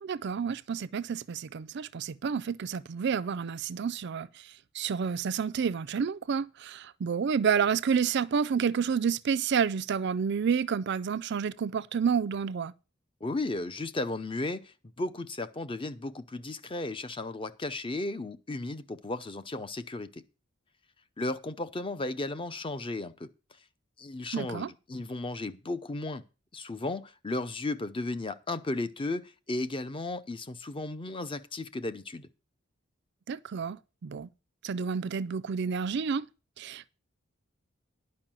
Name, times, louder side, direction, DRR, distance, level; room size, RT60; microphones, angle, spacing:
voice 1, 0.0-4.3 4.7-12.7 24.3-24.7 33.3-34.3 34.6-36.3 36.6-36.9, right 6 dB, 60° right, 0.4 m, -29 dB
voice 2, 13.2-20.2 21.2-23.3 24.0-26.2 26.5-32.3, left 2 dB, 25° left, 0.7 m, -35 dB
10.5 x 5.3 x 7.4 m
head